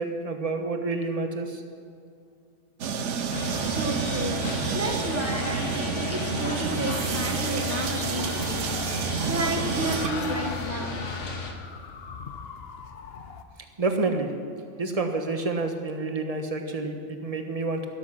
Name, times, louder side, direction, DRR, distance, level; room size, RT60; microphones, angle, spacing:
voice 1, 0.0-1.6 13.8-14.3 14.8-17.9, right 3 dB, 30° right, 5 dB, 1.2 m, -28 dB
sound 1, 2.8-10.7, right 6 dB, 80° right, 1.1 m, -30 dB
sound 2, 3.3-11.5, left 3 dB, 85° left, 1.7 m, -33 dB
voice 2, 3.6-4.4 4.7-8.7 9.3-11.0, right 1 dB, 15° right, 3 dB, 1.2 m, -32 dB
sound 3, 8.2-13.4, left 6 dB, 60° left, 1.0 m, -42 dB
12.5 x 12.5 x 5.9 m, 2.3 s
omnidirectional pair, 1.2 m